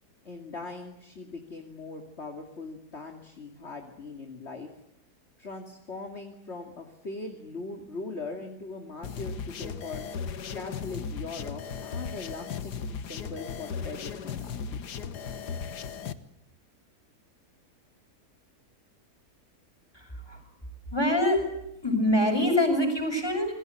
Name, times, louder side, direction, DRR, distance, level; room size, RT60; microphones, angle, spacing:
voice 1, 0.2-4.7 5.4-10.1 10.5-14.9, left 3 dB, 40° left, 3 dB, 2.8 m, -40 dB
sound 1, 9.0-16.1, left 6 dB, 80° left, 1.9 m, -36 dB
voice 2, 19.9-20.4 20.9-21.4 21.8-23.5, left 1 dB, 15° left, 4 dB, 7.5 m, -25 dB
28.5 x 21.5 x 8.3 m, 0.83 s
omnidirectional pair, 1.7 m